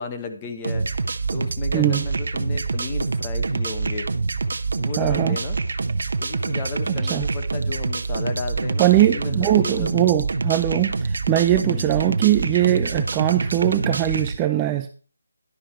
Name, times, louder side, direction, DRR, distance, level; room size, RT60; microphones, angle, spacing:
voice 1, 0.0-4.1 4.8-5.6 6.2-9.9 11.6-11.9, left 4 dB, 20° left, 5 dB, 1.0 m, -34 dB
sound 1, 0.6-14.4, right 4 dB, 60° right, 0.8 m, -26 dB
voice 2, 1.7-2.1 5.0-5.4 6.9-7.3 8.8-14.9, right 13 dB, 15° right, 7 dB, 0.4 m, -21 dB
11.0 x 6.3 x 4.3 m, 0.41 s
figure-of-eight pair, 170°, 0 cm